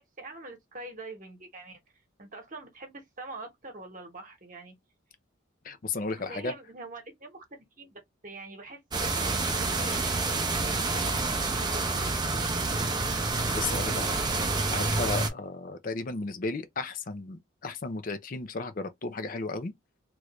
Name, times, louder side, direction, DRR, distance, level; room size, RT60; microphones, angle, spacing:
voice 1, 0.0-1.8 2.2-4.8 5.6-12.9, right 2 dB, 40° right, 1.1 m, -45 dB
voice 2, 5.6-6.5 13.5-14.2 14.7-19.7, left 3 dB, 40° left, 0.5 m, -34 dB
sound 1, 8.9-15.3, right 3 dB, 20° right, 0.6 m, -28 dB
3.1 x 2.5 x 3.1 m
head